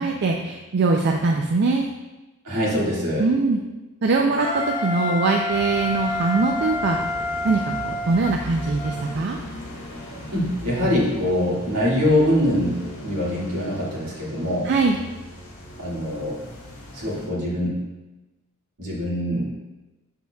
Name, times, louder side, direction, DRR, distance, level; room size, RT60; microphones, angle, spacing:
voice 1, 0.0-1.9 3.2-3.6 4.0-7.0 7.4-9.4 14.6-15.0, right 3 dB, 50° right, 2 dB, 0.4 m, -22 dB
voice 2, 2.4-3.3 10.3-14.7 15.8-16.4 16.9-17.8 18.8-19.4, left 1 dB, 70° right, -6 dB, 1.9 m, -23 dB
Wind instrument woodwind instrument, 4.4-9.1, left 2 dB, 20° left, 0.6 m, -28 dB
sound 1, 5.5-17.3, left 1 dB, 60° left, 1.5 m, -39 dB
6.8 x 6.3 x 2.3 m, 1.1 s
head